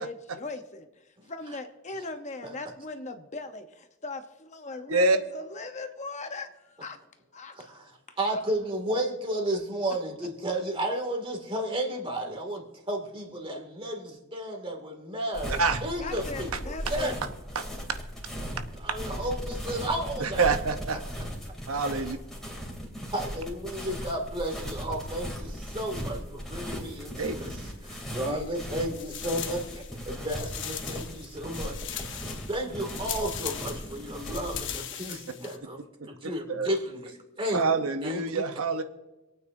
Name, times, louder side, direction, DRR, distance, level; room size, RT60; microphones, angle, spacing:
voice 1, 0.0-7.0 7.3-7.7 8.1-8.4 16.0-17.2, left 3 dB, 35° left, 7 dB, 0.9 m, -39 dB
voice 2, 7.5-7.9 8.2-17.2 18.8-20.5 21.9-22.0 23.1-32.2 32.5-37.6 38.0-38.5, right 1 dB, 25° right, 1 dB, 2.3 m, -33 dB
sound 1, 15.3-34.6, equal, ahead, 2.8 m, -38 dB
voice 3, 15.4-15.8 17.5-17.6 20.2-21.0 21.7-22.2 27.2-27.3 35.1-35.2 36.5-36.7 37.5-38.8, right 3 dB, 80° right, 8 dB, 0.9 m, -26 dB
sound 2, 27.7-28.6 28.9-35.6, left 10 dB, 60° left, 1.0 m, -40 dB
26.5 x 9.2 x 2.7 m, 1.1 s
head